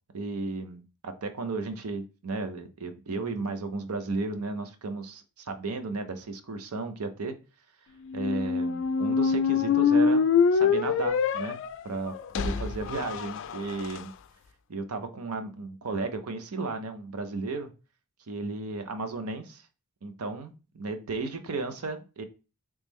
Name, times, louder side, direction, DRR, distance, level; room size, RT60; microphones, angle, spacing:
voice 1, 0.1-7.3 8.1-14.1 14.7-17.7 18.3-19.7 20.0-22.2, right 3 dB, 80° right, 8 dB, 0.6 m, -34 dB
sound 1, 8.1-14.0, left 5 dB, 60° left, 0.3 m, -25 dB
3.1 x 3.1 x 3.5 m, 0.32 s
head